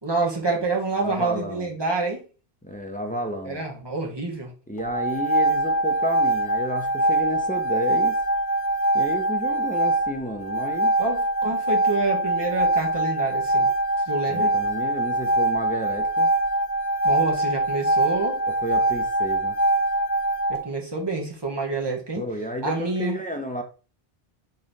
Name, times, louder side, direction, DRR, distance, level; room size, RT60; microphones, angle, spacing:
voice 1, 0.0-2.2 3.4-4.5 11.0-13.7 14.1-14.5 17.0-18.4 20.5-22.2 22.6-23.2, right 3 dB, 25° right, 0.9 m, -27 dB
voice 2, 1.0-1.7 2.6-3.6 4.7-8.2 8.9-10.9 14.3-16.3 18.6-19.6 22.1-23.6, equal, 15° left, 0.3 m, -31 dB
sound 1, 4.8-20.6, right 2 dB, 90° left, 1.1 m, -23 dB
3.8 x 3.1 x 3.9 m
omnidirectional pair, 1.2 m